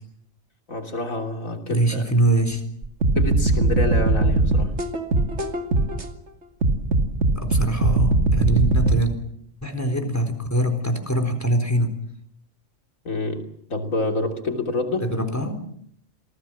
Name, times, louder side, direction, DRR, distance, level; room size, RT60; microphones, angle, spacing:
voice 1, 0.7-2.0 3.2-4.8 13.1-15.1, left 2 dB, 90° left, 4 dB, 3.5 m, -27 dB
voice 2, 1.7-2.6 7.3-9.1 9.6-12.0 15.0-15.6, right 1 dB, 10° left, 4 dB, 3.9 m, -23 dB
sound 1, 2.8-6.1 6.6-9.0, right 2 dB, 55° right, 2.4 m, -20 dB
27.5 x 19.0 x 7.5 m, 0.69 s
omnidirectional pair, 1.4 m